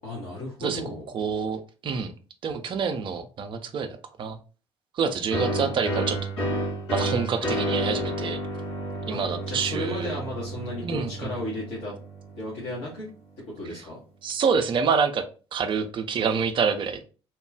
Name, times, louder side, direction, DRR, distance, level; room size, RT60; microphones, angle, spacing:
voice 1, 0.0-1.1 9.1-11.9 12.4-13.1 13.5-14.0, left 1 dB, 55° left, -5 dB, 1.1 m, -34 dB
voice 2, 1.1-2.1 2.4-3.9 4.2-4.4 4.9-6.2 6.9-8.4 9.1-10.2 10.8-11.3 14.2-15.2 15.5-17.0, right 6 dB, 35° right, 7 dB, 0.5 m, -27 dB
sound 1, 5.3-12.8, equal, 85° left, 1.3 m, -31 dB
2.9 x 2.3 x 3.4 m, 0.36 s
figure-of-eight pair, 50°, 14 cm